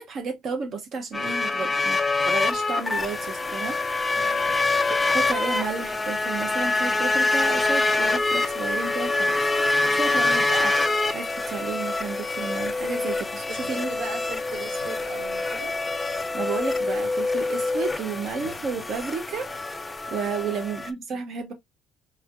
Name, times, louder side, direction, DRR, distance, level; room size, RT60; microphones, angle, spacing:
voice 1, 0.0-3.8 5.1-9.5 9.9-13.9 16.3-19.5 20.1-21.5, right 5 dB, 35° right, 0.6 m, -32 dB
sound 1, 1.1-20.9, left 3 dB, 10° left, 0.3 m, -25 dB
voice 2, 1.6-2.3 4.1-4.6 9.8-10.2 13.3-15.7 18.0-18.5 20.3-20.6, right 4 dB, 85° right, 2.5 m, -41 dB
4.3 x 3.1 x 2.4 m
cardioid pair, 180°, 0 cm